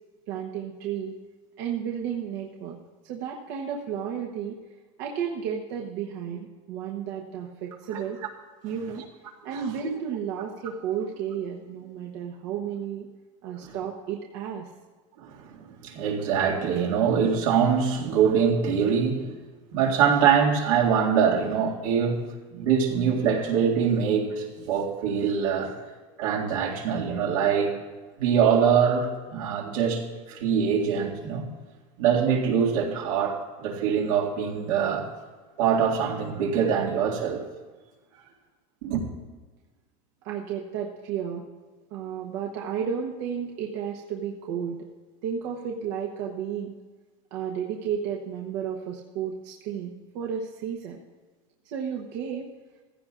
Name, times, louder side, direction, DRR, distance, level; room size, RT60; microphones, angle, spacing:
voice 1, 0.3-1.1 1.6-2.8 3.0-4.6 5.0-8.2 8.6-9.0 9.4-13.1 13.4-14.7 40.2-41.4 41.9-44.9 45.2-46.7 47.3-51.0 51.6-52.5, right 8 dB, 55° right, 1.1 m, -32 dB
voice 2, 15.2-19.4 19.7-25.8 26.2-27.7 28.2-31.5 32.0-35.1 35.6-37.5 38.8-39.0, right 7 dB, 80° right, 2.2 m, -24 dB
16.0 x 15.5 x 2.5 m
supercardioid pair, 160°, 17 cm